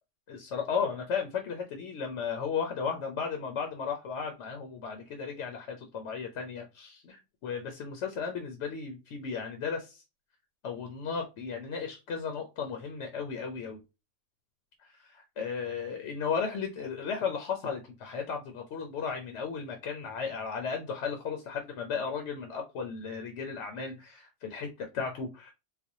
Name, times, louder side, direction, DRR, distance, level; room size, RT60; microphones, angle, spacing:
voice 1, 0.3-10.0 10.6-13.8 14.8-25.5, left 6 dB, 75° left, 4 dB, 0.9 m, -35 dB
4.1 x 2.2 x 2.6 m, 0.27 s
omnidirectional pair, 1.2 m